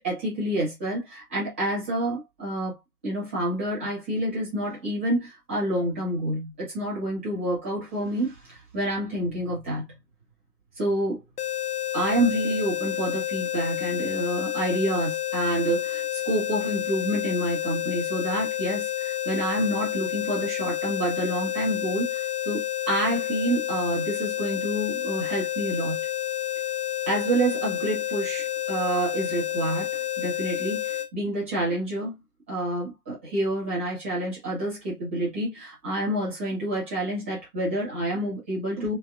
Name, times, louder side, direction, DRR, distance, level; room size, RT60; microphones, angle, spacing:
voice 1, 0.0-2.7 3.0-9.8 10.8-11.2 11.9-26.0 27.1-32.1 32.5-39.0, right 1 dB, 10° right, 0.7 m, -28 dB
sound 1, 11.4-31.1, left 12 dB, 85° left, 0.7 m, -30 dB
3.4 x 2.8 x 2.3 m
figure-of-eight pair, 140°, 45 cm